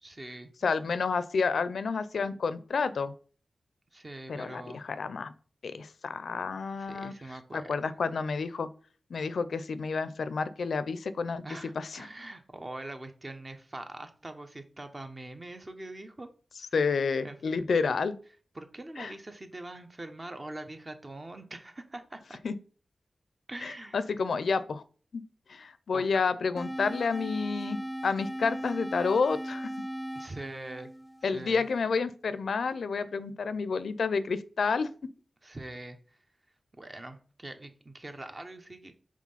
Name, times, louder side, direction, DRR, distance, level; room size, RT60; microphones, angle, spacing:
voice 1, 0.0-0.5 3.9-4.8 6.8-7.9 11.4-16.3 17.2-17.7 18.5-22.4 23.5-24.0 25.9-26.0 30.1-30.9 31.2-31.6 35.4-36.2 36.8-39.0, right 2 dB, 35° right, 7 dB, 0.9 m, -43 dB
voice 2, 0.6-3.1 4.3-5.3 5.6-7.1 7.5-8.7 9.1-11.4 11.8-12.1 16.7-18.2 19.0-19.1 22.4-22.5 23.6-24.8 25.1-25.2 25.5-29.7 31.2-34.9, left 5 dB, 90° left, 14 dB, 0.4 m, -30 dB
sound 1, 26.6-31.6, equal, 10° left, 0.5 m, -38 dB
5.0 x 3.7 x 5.5 m, 0.41 s
cardioid pair, 60°, 0 cm